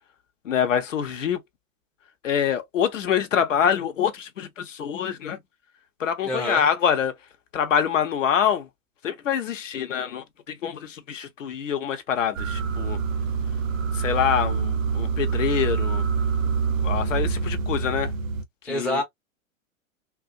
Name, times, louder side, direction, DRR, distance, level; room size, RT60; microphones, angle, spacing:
voice 1, 0.4-1.4 2.2-5.4 6.0-7.1 7.5-8.7 9.0-13.0 13.9-16.0 16.8-18.1 18.6-19.0, left 8 dB, 60° left, 0.8 m, -25 dB
voice 2, 6.2-6.7 18.7-19.0, left 1 dB, ahead, 0.5 m, -26 dB
sound 1, 12.3-18.4, right 5 dB, 65° right, 0.6 m, -26 dB
2.4 x 2.0 x 2.6 m
figure-of-eight pair, 100°, 42 cm